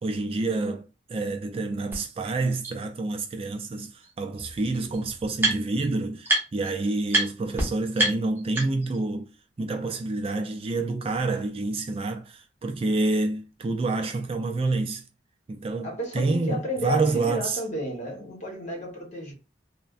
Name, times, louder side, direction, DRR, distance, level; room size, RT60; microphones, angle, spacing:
voice 1, 0.0-9.3 9.6-15.1 15.5-17.6, right 3 dB, 30° right, 0.3 m, -28 dB
sound 1, 1.9-2.0 2.6-2.7 4.0-4.1 4.4-5.9 6.2-6.7 7.1-7.3 7.6-7.7 8.0-9.0, right 2 dB, 10° right, 1.0 m, -26 dB
voice 2, 15.8-19.3, equal, 40° left, 1.1 m, -32 dB
3.3 x 2.1 x 2.4 m
head